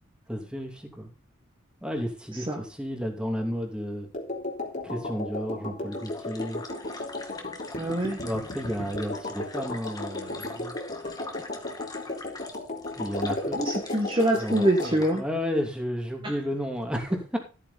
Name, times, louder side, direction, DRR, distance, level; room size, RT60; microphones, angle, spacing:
voice 1, 0.3-1.1 1.8-4.1 4.8-6.6 8.2-10.8 13.0-13.6 14.4-17.4, equal, 5° right, 2 dB, 2.8 m, -32 dB
sound 1, 4.1-14.9, left 2 dB, 40° left, 3.5 m, -35 dB
sound 2, 5.9-15.2, left 3 dB, 20° left, 1.9 m, -43 dB
voice 2, 7.8-8.2 13.5-15.2 16.2-16.4, right 1 dB, 25° right, 1 dB, 1.9 m, -25 dB
14.0 x 9.1 x 4.2 m, 0.34 s
head